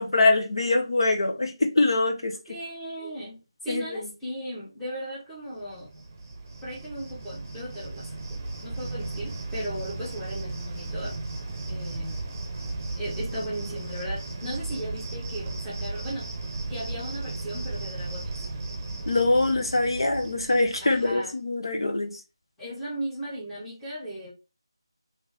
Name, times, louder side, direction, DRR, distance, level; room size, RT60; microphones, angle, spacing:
voice 1, 0.0-2.4 3.7-4.1 19.1-22.2, left 2 dB, 65° left, 0.8 m, -24 dB
voice 2, 2.5-5.9 6.6-11.2 11.7-12.2 13.0-16.3 16.7-18.3 20.8-21.3 22.6-24.3, right 1 dB, 5° left, 1.0 m, -37 dB
Cricket, 5.6-21.3, right 2 dB, 25° right, 0.8 m, -35 dB
4.2 x 2.6 x 3.4 m
figure-of-eight pair, 165°, 3 cm